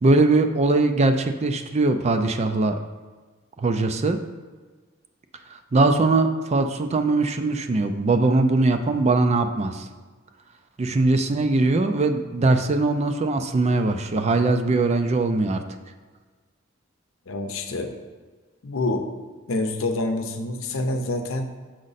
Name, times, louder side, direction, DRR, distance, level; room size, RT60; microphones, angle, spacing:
voice 1, 0.0-2.8 3.6-4.2 5.5-9.9 10.8-15.6, right 2 dB, 30° right, 7 dB, 0.4 m, -21 dB
voice 2, 17.3-18.0 18.6-19.1 19.5-21.5, left 2 dB, 75° left, 6 dB, 0.7 m, -27 dB
6.4 x 4.9 x 4.1 m, 1.4 s
head